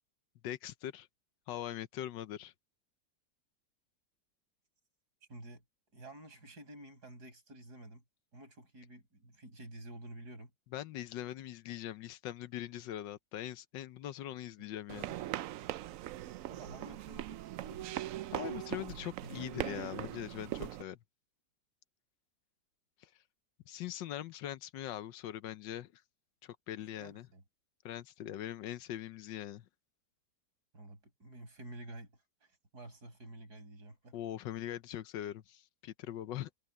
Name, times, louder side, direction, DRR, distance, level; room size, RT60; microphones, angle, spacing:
voice 1, 0.4-1.1 1.5-2.5 10.7-15.2 18.3-21.0 23.0-23.1 23.7-26.0 26.4-27.3 27.8-29.7 34.1-36.5, left 12 dB, 85° left, 1.5 m, -42 dB
voice 2, 5.3-5.6 5.9-8.0 8.3-10.5 16.5-18.0 18.3-19.5 27.0-27.4 30.7-34.2, right 1 dB, 60° right, 6.4 m, -51 dB
sound 1, 14.9-20.8, right 13 dB, 80° right, 0.7 m, -40 dB
omnidirectional pair, 1.9 m